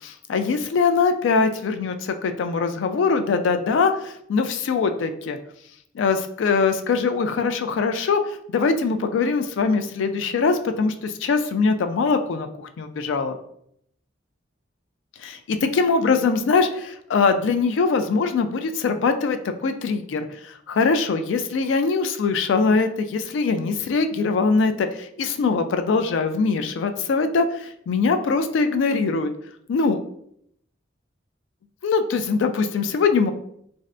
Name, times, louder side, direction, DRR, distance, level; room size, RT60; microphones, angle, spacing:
voice 1, 0.0-5.4 5.9-13.4 15.3-29.3 29.7-30.0 31.8-33.3, left 4 dB, 70° left, 8 dB, 0.3 m, -22 dB
3.1 x 2.5 x 2.5 m, 0.71 s
head